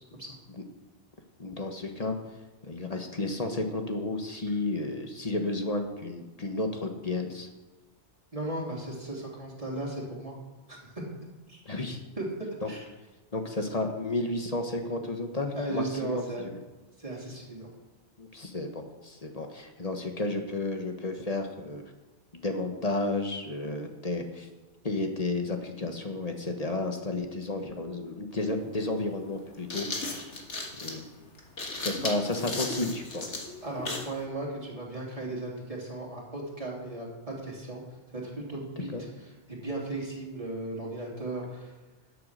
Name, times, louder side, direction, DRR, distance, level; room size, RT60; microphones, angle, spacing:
voice 1, 1.4-2.2 2.7-7.5 11.6-12.0 12.6-12.7 13.3-16.2 18.2-21.8 22.3-24.5 24.8-30.0 30.8-31.0 31.7-33.4 38.9-39.0, left 2 dB, 35° left, 4 dB, 1.3 m, -32 dB
voice 2, 8.3-10.4 10.7-10.8 11.5-11.6 12.2-12.3 12.7-12.8 15.5-16.5 17.0-17.7 33.6-37.8 38.1-38.9 39.5-41.7, right 2 dB, 30° right, -3 dB, 3.2 m, -36 dB
sound 1, 28.3-28.4 29.4-34.2, left 2 dB, 85° left, 2.1 m, -35 dB
11.5 x 8.2 x 6.5 m, 1.1 s
omnidirectional pair, 1.1 m